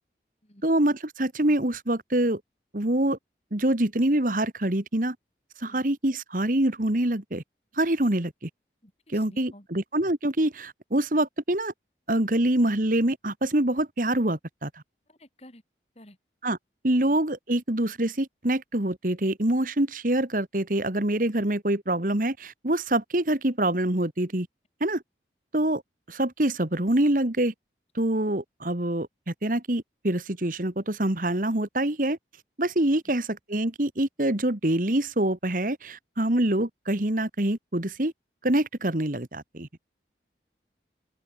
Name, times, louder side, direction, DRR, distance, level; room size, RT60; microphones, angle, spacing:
voice 1, 0.6-2.4 2.7-3.2 3.5-5.2 5.6-7.4 7.7-8.5 9.1-11.7 12.1-14.8 16.4-16.6 16.8-24.5 24.8-25.0 25.5-25.8 26.1-27.5 28.0-32.2 32.6-38.1 38.4-39.7, right 1 dB, 50° right, 1.9 m, -25 dB
voice 2, 8.8-9.7 15.1-15.6 15.9-16.2 16.9-17.0 33.1-33.2, left 1 dB, 35° left, 7.7 m, -52 dB
head